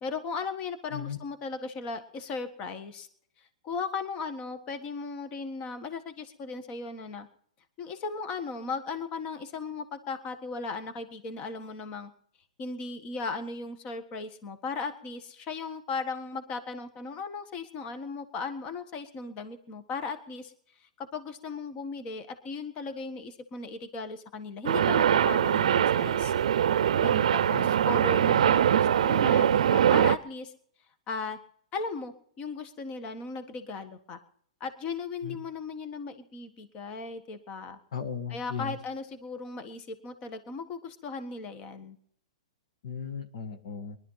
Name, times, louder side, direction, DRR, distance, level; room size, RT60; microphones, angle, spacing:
voice 1, 0.0-3.1 3.6-7.3 7.8-12.1 12.6-20.5 20.8-26.3 27.0-30.5 31.1-31.4 31.7-34.2 34.6-37.8 38.3-42.0, left 4 dB, 30° left, 10 dB, 1.6 m, -37 dB
sound 1, 24.7-30.2, right 9 dB, 75° right, 0.6 m, -23 dB
voice 2, 37.9-38.8 42.8-44.0, left 6 dB, 70° left, 8 dB, 1.8 m, -36 dB
20.0 x 12.0 x 5.8 m, 0.64 s
hypercardioid pair, 135°, 4 cm